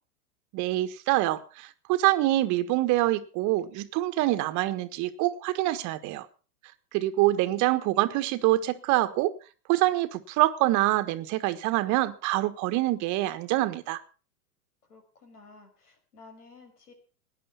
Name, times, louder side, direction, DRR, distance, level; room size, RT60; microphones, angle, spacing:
voice 1, 0.5-6.3 6.9-9.3 9.7-14.0, right 16 dB, 40° right, 1.4 m, -25 dB
voice 2, 7.2-7.8 14.9-16.9, left 3 dB, 80° left, 5.5 m, -54 dB
18.0 x 10.5 x 5.7 m
hypercardioid pair, 100°, 45 cm